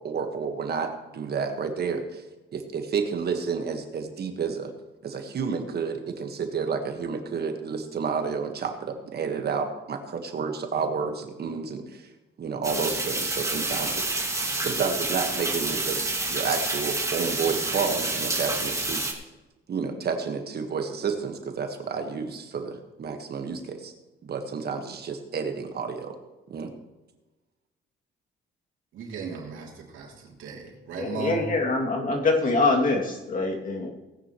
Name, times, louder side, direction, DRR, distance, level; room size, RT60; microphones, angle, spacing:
voice 1, 0.0-2.2 2.5-4.7 5.0-12.1 12.4-14.0 14.5-19.0 19.7-23.9 24.2-26.2 26.5-26.7, right 5 dB, 55° right, 5 dB, 1.5 m, -30 dB
sound 1, 12.6-19.1, right 2 dB, 15° right, 2.1 m, -28 dB
voice 2, 28.9-31.5, right 4 dB, 80° right, -1 dB, 3.0 m, -36 dB
voice 3, 31.0-33.9, left 3 dB, 45° left, 0 dB, 2.5 m, -24 dB
18.0 x 9.7 x 3.1 m, 1.1 s
cardioid pair, 90°, 20 cm